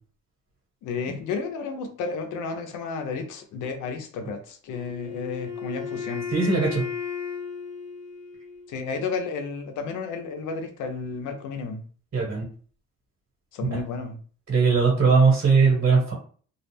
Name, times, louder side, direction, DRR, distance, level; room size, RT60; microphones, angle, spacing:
voice 1, 0.8-6.3 8.7-11.8 13.5-14.2, left 4 dB, 80° left, 5 dB, 0.6 m, -32 dB
Wind instrument woodwind instrument, 4.7-8.8, left 6 dB, 25° left, 0.8 m, -34 dB
voice 2, 6.3-6.8 12.1-12.4 13.7-13.8 14.5-16.1, right 4 dB, 50° right, -3 dB, 1.3 m, -19 dB
2.4 x 2.0 x 3.2 m, 0.43 s
cardioid pair, 90°, 30 cm